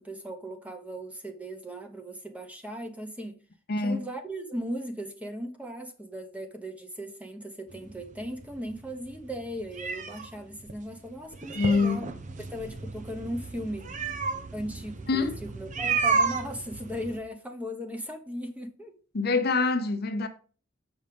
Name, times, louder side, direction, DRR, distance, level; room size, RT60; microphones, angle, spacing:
voice 1, 0.0-3.4 3.8-12.1 12.4-13.8 14.5-18.9, equal, 5° right, 1.0 m, -37 dB
sound 1, 7.7-17.2, right 4 dB, 40° right, 0.8 m, -32 dB
voice 2, 11.5-12.0 15.1-15.3 19.1-20.3, left 4 dB, 50° left, 0.8 m, -25 dB
7.2 x 5.1 x 5.1 m
head